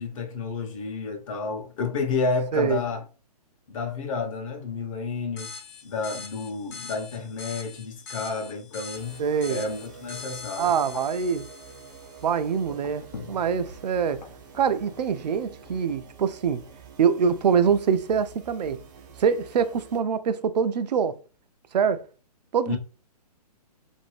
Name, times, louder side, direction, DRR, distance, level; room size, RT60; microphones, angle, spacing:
voice 1, 0.0-3.0 3.7-5.5 5.8-9.2 9.5-11.0 22.7-22.8, left 4 dB, 55° left, 0.8 m, -30 dB
sound 1, 5.4-12.5, left 5 dB, 30° left, 0.5 m, -43 dB
sound 2, 8.9-20.0, right 7 dB, 30° right, 0.4 m, -48 dB
voice 2, 9.2-9.6 10.6-11.4 12.2-14.2 14.5-16.6 17.0-18.8 19.2-21.2 21.7-22.1 22.5-22.8, right 7 dB, 85° right, 0.4 m, -24 dB
sound 3, 11.7-18.9, left 5 dB, 85° left, 0.7 m, -49 dB
2.6 x 2.6 x 3.1 m
hypercardioid pair, 150°, 21 cm